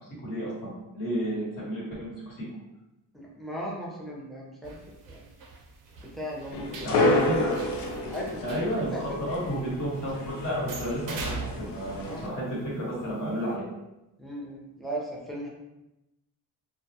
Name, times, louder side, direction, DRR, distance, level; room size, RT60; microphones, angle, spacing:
voice 1, 0.2-2.3 6.8-7.5 8.4-13.6, equal, 50° left, -7 dB, 1.3 m, -32 dB
voice 2, 3.1-4.8 5.1-5.2 6.0-7.1 8.1-9.2 12.1-12.2 14.2-15.5, right 1 dB, ahead, -4 dB, 0.6 m, -37 dB
sound 1, 4.6-13.5, right 3 dB, 50° right, 0.5 m, -43 dB
sound 2, 6.5-12.3, left 2 dB, 75° left, 0.6 m, -30 dB
2.2 x 2.2 x 2.7 m, 0.95 s
cardioid pair, 75°, 42 cm